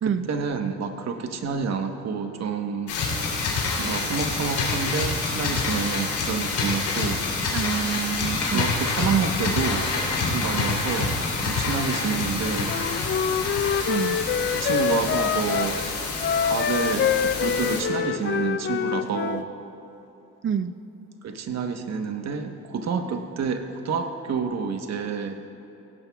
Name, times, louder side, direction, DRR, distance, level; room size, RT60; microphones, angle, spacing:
voice 1, 0.0-2.9 3.8-7.3 8.4-12.8 14.5-15.8 16.4-19.5 21.2-25.4, right 5 dB, 60° right, 6 dB, 1.1 m, -28 dB
sound 1, 2.9-17.8, left 3 dB, 80° left, 3.1 m, -27 dB
voice 2, 7.5-8.7 11.2-11.3 13.9-14.2 20.4-20.7, right 7 dB, 45° right, 13 dB, 0.5 m, -27 dB
Wind instrument woodwind instrument, 12.6-15.7 16.2-19.4, left 7 dB, 40° left, 0.4 m, -26 dB
18.0 x 16.0 x 2.3 m, 2.9 s
cardioid pair, 90°, 30 cm